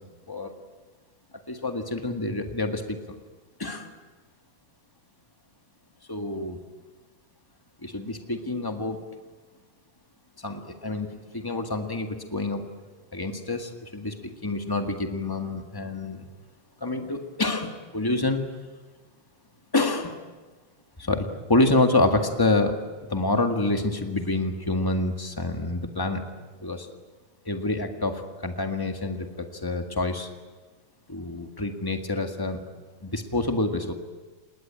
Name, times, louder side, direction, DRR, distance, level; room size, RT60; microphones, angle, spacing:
voice 1, 1.5-3.0 3.6-3.9 6.1-6.7 7.8-9.0 10.4-12.7 13.1-16.2 16.8-18.4 19.7-20.2 21.0-22.8 23.1-26.2 26.6-26.9 27.4-30.3 31.1-32.6 33.0-33.9, left 2 dB, 20° left, 5 dB, 0.6 m, -27 dB
29.0 x 20.0 x 8.8 m, 1.3 s
omnidirectional pair, 3.8 m